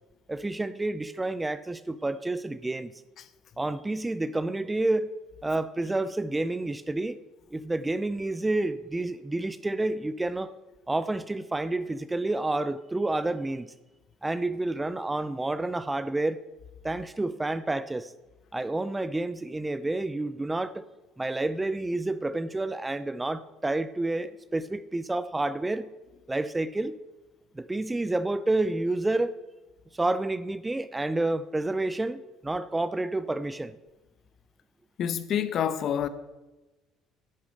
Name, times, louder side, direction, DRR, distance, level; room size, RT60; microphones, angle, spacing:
voice 1, 0.3-2.9 3.6-5.1 5.4-7.2 7.5-10.5 10.9-13.7 14.2-16.4 16.8-18.1 18.5-20.8 21.2-25.9 26.3-27.0 27.5-29.4 29.9-33.8, right 2 dB, 10° right, 0.5 m, -29 dB
voice 2, 35.0-36.1, left 9 dB, 55° left, 1.0 m, -27 dB
11.5 x 8.3 x 6.5 m
cardioid pair, 110°, 0 cm